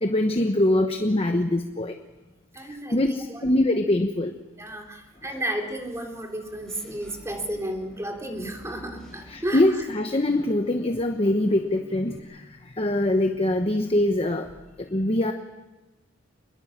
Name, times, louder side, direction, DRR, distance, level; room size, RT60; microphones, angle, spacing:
voice 1, 0.0-1.9 2.9-4.3 9.3-12.4 12.8-14.5 14.8-15.3, left 1 dB, 30° left, 5 dB, 1.1 m, -23 dB
voice 2, 2.5-3.6 4.6-9.8, right 1 dB, 15° right, 2 dB, 3.6 m, -33 dB
Engine / Mechanisms, 6.3-12.2, equal, 5° left, 5.6 m, -50 dB
27.5 x 21.0 x 7.4 m, 1.1 s
head